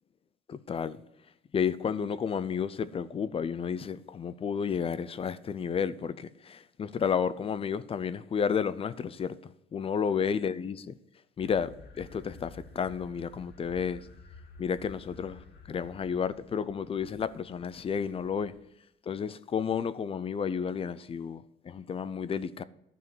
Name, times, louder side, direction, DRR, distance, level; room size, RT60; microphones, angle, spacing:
voice 1, 0.5-1.0 1.5-10.9 11.4-14.1 14.6-18.5 19.1-22.6, left 7 dB, 35° left, 0.6 m, -32 dB
sound 1, 11.4-18.6, left 4 dB, 65° left, 1.8 m, -52 dB
12.0 x 6.9 x 6.3 m
cardioid pair, 110°, 17 cm